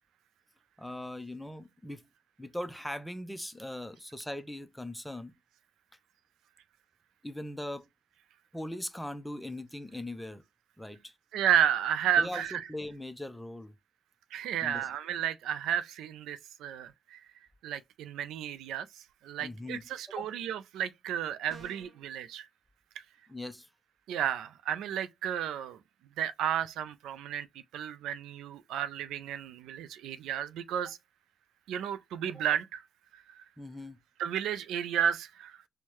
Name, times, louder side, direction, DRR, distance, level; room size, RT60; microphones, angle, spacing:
voice 1, 0.8-2.0 2.4-5.3 7.2-7.8 8.5-10.4 10.8-11.1 12.2-13.7 14.6-14.9 19.4-20.3 23.3-23.7 33.6-34.0, left 1 dB, 5° left, 0.5 m, -40 dB
voice 2, 11.3-12.6 14.3-17.2 17.6-22.5 24.1-25.8 26.2-27.5 27.7-31.0 31.7-32.8 33.1-33.4 34.2-35.6, right 9 dB, 85° right, 0.3 m, -32 dB
sound 1, 21.5-22.0, right 4 dB, 55° right, 0.9 m, -51 dB
4.5 x 2.1 x 2.9 m
cardioid pair, 90°, 0 cm